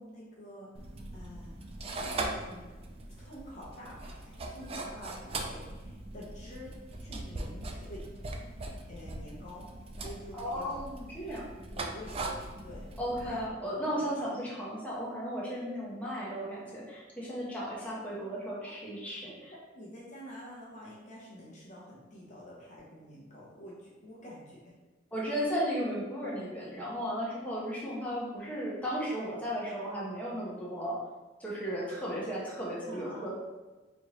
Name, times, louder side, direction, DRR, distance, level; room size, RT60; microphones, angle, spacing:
voice 1, 0.0-2.8 3.1-8.1 8.9-10.8 11.6-12.9 13.2-13.6 14.0-14.3 18.7-18.8 19.7-24.8 32.4-32.5 32.8-33.3, left 1 dB, 40° left, -5 dB, 0.7 m, -48 dB
sound 1, 0.7-13.5, right 2 dB, 30° right, 0.3 m, -40 dB
voice 2, 10.4-11.4 13.0-19.5 25.1-31.0 31.4-33.3, equal, 10° left, -7 dB, 1.0 m, -35 dB
4.3 x 3.0 x 3.0 m, 1.2 s
head